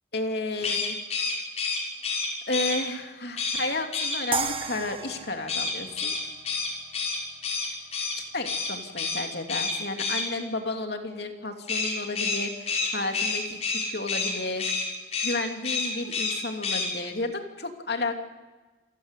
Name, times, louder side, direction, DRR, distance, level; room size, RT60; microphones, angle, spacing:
voice 1, 0.1-1.0 2.5-6.1 8.3-13.6 13.9-14.8 15.2-18.2, left 2 dB, 65° left, 4 dB, 3.0 m, -32 dB
sound 1, 0.6-2.8 3.4-3.6 3.9-4.2 5.5-8.1 8.4-8.7 9.0-9.2 9.5-10.2 11.7-14.3 14.6-14.8 15.1-15.4 15.6-16.3 16.6-16.9, left 4 dB, 35° left, 6.5 m, -28 dB
sound 2, 4.3-7.4, right 4 dB, 30° right, 1.6 m, -34 dB
28.5 x 16.0 x 8.4 m, 1.2 s
head